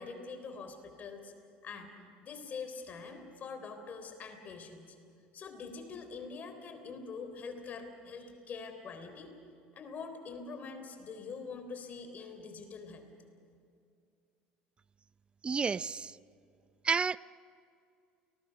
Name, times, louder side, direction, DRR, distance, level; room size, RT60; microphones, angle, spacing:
voice 1, 0.0-1.3 1.6-2.0 2.2-5.0 5.3-9.3 9.7-13.1, left 4 dB, 40° left, 7 dB, 3.7 m, -44 dB
voice 2, 15.4-16.2 16.8-17.2, right 5 dB, 25° right, 20 dB, 0.5 m, -30 dB
29.5 x 20.0 x 5.9 m, 2.4 s
hypercardioid pair, 75°, 4 cm